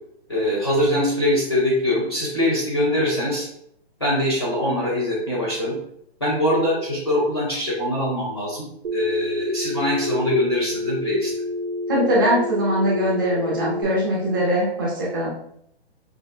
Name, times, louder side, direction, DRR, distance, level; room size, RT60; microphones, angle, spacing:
voice 1, 0.3-3.5 4.0-5.8 6.2-8.7 8.9-11.3, left 1 dB, 25° left, -4 dB, 0.5 m, -22 dB
Telephone, 8.8-13.8, left 1 dB, 90° right, 0.9 m, -28 dB
voice 2, 11.9-15.3, equal, 20° right, -6 dB, 0.9 m, -21 dB
5.2 x 2.4 x 2.3 m, 0.70 s
hypercardioid pair, 175°, 32 cm